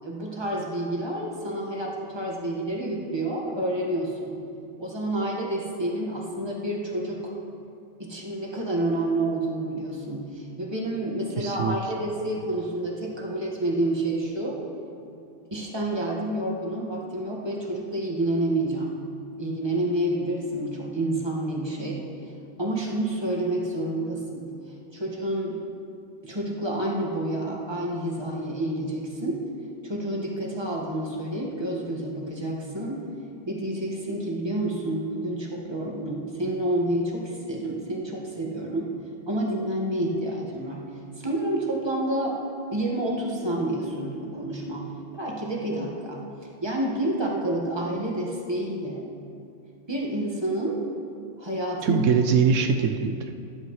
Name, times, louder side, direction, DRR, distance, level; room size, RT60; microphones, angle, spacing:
voice 1, 0.0-4.4 4.8-7.4 8.0-14.6 15.5-19.0 19.4-22.0 22.6-24.5 24.9-25.6 26.2-29.4 29.8-33.1 33.5-38.9 39.3-40.9 41.2-42.4 42.7-49.1 49.9-50.8 51.4-52.0, right 1 dB, 20° right, -2 dB, 1.7 m, -29 dB
voice 2, 11.4-11.8 51.8-53.3, right 6 dB, 80° right, 5 dB, 1.0 m, -22 dB
18.0 x 10.5 x 3.2 m, 2.6 s
omnidirectional pair, 1.3 m